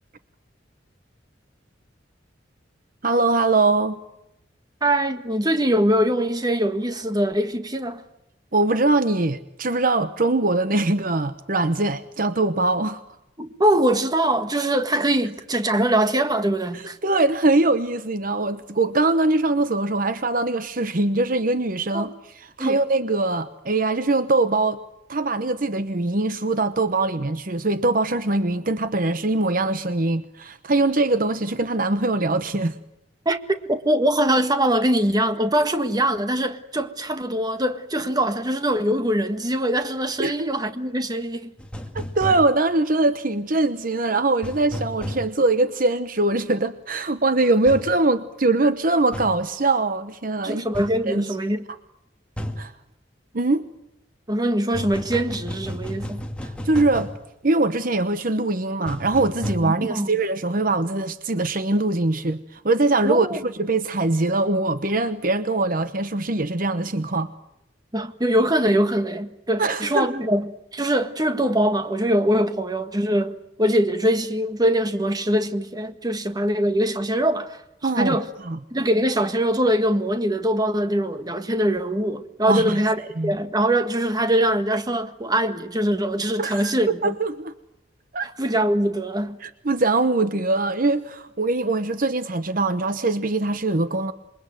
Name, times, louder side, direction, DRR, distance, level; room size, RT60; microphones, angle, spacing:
voice 1, 3.0-4.0 8.5-13.0 16.7-24.8 25.1-32.8 40.2-40.5 41.9-50.7 51.1-51.3 52.6-52.7 53.3-53.7 56.4-57.1 57.4-67.3 69.6-70.1 77.8-78.2 78.5-78.6 82.5-82.8 83.2-83.3 86.4-87.5 88.1-88.3 89.4-94.1, right 2 dB, 45° right, 1.0 m, -22 dB
voice 2, 4.8-8.0 13.4-17.0 21.9-22.1 22.6-22.8 33.2-41.5 50.4-51.6 54.3-56.2 59.6-60.1 63.0-63.4 67.9-78.3 78.7-87.1 88.2-89.4, right 1 dB, 20° right, 1.7 m, -23 dB
sound 1, 41.6-42.5 44.4-45.3 47.7-47.9 49.1-49.4 50.7-50.9 52.4-52.6 54.7-57.2 58.9-59.5, equal, 5° left, 2.1 m, -32 dB
27.5 x 22.5 x 9.3 m
head